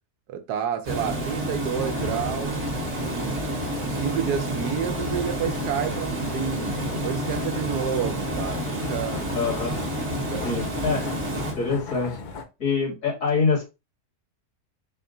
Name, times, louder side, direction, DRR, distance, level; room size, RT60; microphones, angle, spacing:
voice 1, 0.3-2.7 3.0-3.4 3.8-9.3 10.3-10.9, right 8 dB, 90° right, 1.3 m, -30 dB
Water, 0.8-11.5, right 1 dB, 50° right, 1.4 m, -29 dB
sound 1, 1.8-12.4, left 4 dB, 80° left, 0.4 m, -38 dB
voice 2, 9.3-9.8 10.4-11.1 11.6-12.2 12.6-13.6, left 5 dB, 55° left, 2.2 m, -25 dB
4.3 x 2.4 x 3.7 m
omnidirectional pair, 1.6 m